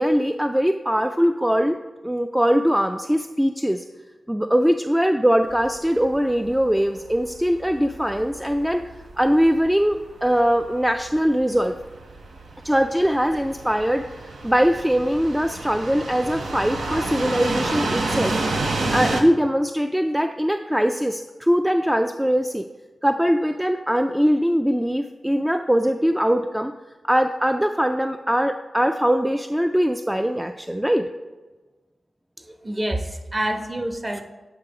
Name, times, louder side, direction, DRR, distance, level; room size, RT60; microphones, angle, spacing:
voice 1, 0.0-1.8 2.0-3.8 4.3-11.7 12.6-18.4 18.9-22.7 23.0-26.7 27.0-31.1, equal, 5° right, 6 dB, 0.3 m, -21 dB
sound 1, 5.5-19.2, right 2 dB, 80° right, 0.7 m, -30 dB
voice 2, 32.6-34.2, right 1 dB, 30° right, 5 dB, 0.9 m, -27 dB
8.5 x 2.9 x 4.8 m, 1.2 s
cardioid pair, 45°, 0 cm